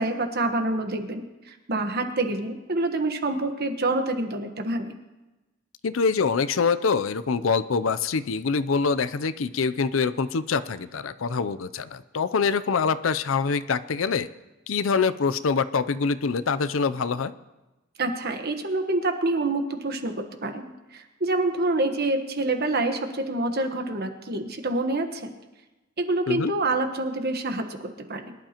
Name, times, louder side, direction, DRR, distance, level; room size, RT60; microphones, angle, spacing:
voice 1, 0.0-4.9 18.0-25.3 26.0-28.3, right 2 dB, 50° right, 6 dB, 1.2 m, -27 dB
voice 2, 5.8-14.3 14.7-17.3 26.3-26.5, left 5 dB, 75° left, 14 dB, 0.5 m, -25 dB
22.5 x 11.5 x 3.0 m, 1.1 s
head